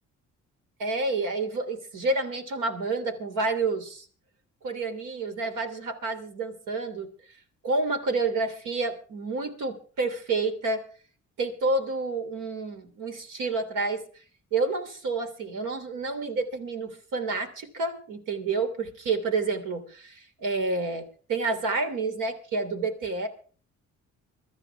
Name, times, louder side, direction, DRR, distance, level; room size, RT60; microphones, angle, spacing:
voice 1, 0.8-4.1 4.6-7.1 7.6-10.8 11.4-14.0 14.5-23.3, right 3 dB, 85° right, 6 dB, 3.1 m, -29 dB
23.5 x 13.5 x 3.5 m, 0.41 s
cardioid pair, 90°, 30 cm